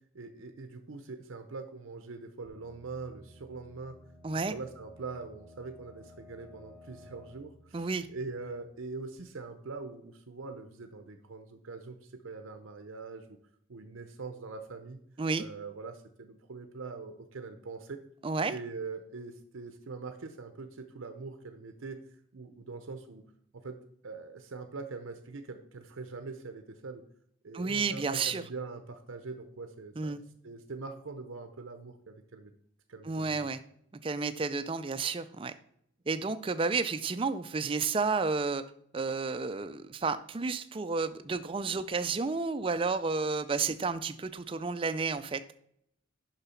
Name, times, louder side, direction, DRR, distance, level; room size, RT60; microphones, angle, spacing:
voice 1, 0.1-4.0 4.5-13.4 13.7-15.0 15.4-18.0 18.5-22.0 22.3-23.2 23.5-23.8 24.0-27.0 27.4-32.5 32.9-33.5, right 4 dB, 80° right, 7 dB, 0.7 m, -43 dB
sound 1, 2.4-9.0, left 1 dB, 25° left, 2.9 m, -56 dB
voice 2, 7.7-8.1 15.2-15.4 18.2-18.5 27.5-28.4 30.0-30.2 33.0-33.6 34.0-35.5 36.1-38.6 38.9-45.4, right 4 dB, 25° right, 11 dB, 0.4 m, -31 dB
6.9 x 5.8 x 5.7 m, 0.72 s
head